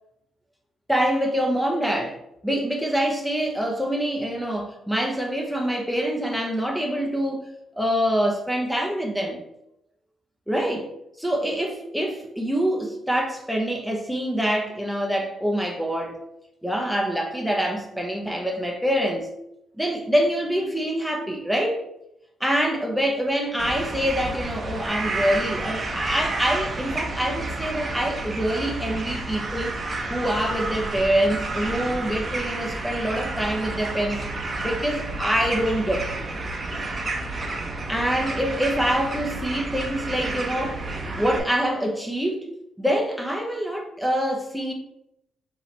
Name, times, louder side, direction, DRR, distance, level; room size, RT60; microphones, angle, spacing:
voice 1, 0.9-7.5 7.7-9.4 10.5-10.9 11.2-16.2 16.6-19.3 19.8-21.9 22.4-29.7 30.1-34.2 34.6-36.3 37.9-42.5 42.8-44.7, equal, ahead, 1 dB, 0.7 m, -25 dB
sound 1, 23.6-41.4, right 2 dB, 35° right, 0.8 m, -30 dB
5.4 x 2.9 x 3.3 m, 0.82 s
cardioid pair, 90°, 0 cm